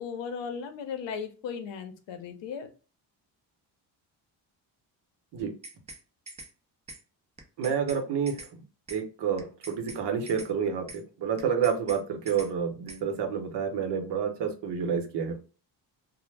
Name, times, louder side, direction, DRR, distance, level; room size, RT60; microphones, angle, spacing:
voice 1, 0.0-2.7, left 6 dB, 80° left, 7 dB, 0.7 m, -36 dB
sound 1, 5.4-6.0 6.3-6.5 6.9-7.0 7.4-8.0 8.3-8.5 8.9-9.0 9.4-10.0 10.3-10.5 10.9-11.0 11.4-12.0 12.3-12.5 12.9-13.0, right 2 dB, 15° right, 0.4 m, -44 dB
voice 2, 7.6-8.5 8.9-15.4, right 7 dB, 65° right, 4 dB, 0.8 m, -29 dB
2.1 x 2.0 x 3.2 m, 0.36 s
cardioid pair, 120°, 44 cm